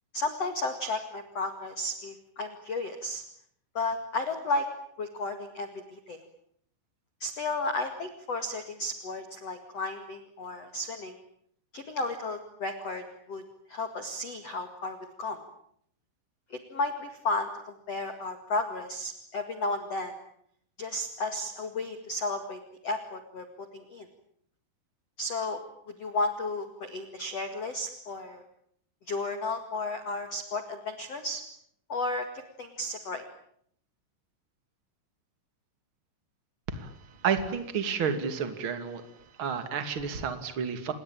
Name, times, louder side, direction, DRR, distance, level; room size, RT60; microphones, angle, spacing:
voice 1, 0.1-3.2 3.7-4.7 5.0-6.2 7.2-11.2 11.7-13.4 13.7-15.4 16.5-20.1 20.8-23.4 23.7-24.1 25.2-25.6 26.0-28.4 29.1-31.4 31.9-32.3 32.6-33.2, left 2 dB, 50° left, 8 dB, 2.0 m, -33 dB
voice 2, 37.2-39.0 39.4-40.9, right 6 dB, 35° right, 9 dB, 2.2 m, -30 dB
28.0 x 21.5 x 8.9 m, 0.67 s
omnidirectional pair, 5.9 m